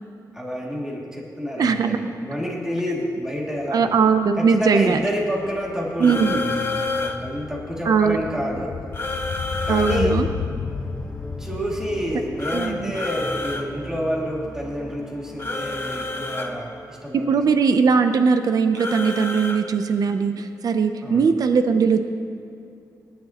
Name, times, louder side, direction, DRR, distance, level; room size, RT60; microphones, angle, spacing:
voice 1, 0.3-3.9 4.4-8.8 9.6-10.2 11.4-17.3 21.0-21.3, equal, 10° right, -4 dB, 2.5 m, -28 dB
voice 2, 1.6-2.0 3.7-5.0 6.0-6.4 7.8-8.2 9.7-10.3 12.5-12.9 17.1-22.0, right 5 dB, 65° right, 8 dB, 0.6 m, -20 dB
sound 1, 3.6-3.7 3.9-14.3 14.6-14.7, left 6 dB, 70° left, 0.7 m, -33 dB
sound 2, 6.0-7.2 8.9-10.0 12.4-13.7 15.4-16.5 18.8-19.6, left 3 dB, 35° left, 1.1 m, -28 dB
sound 3, 10.6-16.9, equal, 15° left, 1.3 m, -39 dB
19.0 x 11.5 x 3.0 m, 2.6 s
cardioid pair, 95°, 7 cm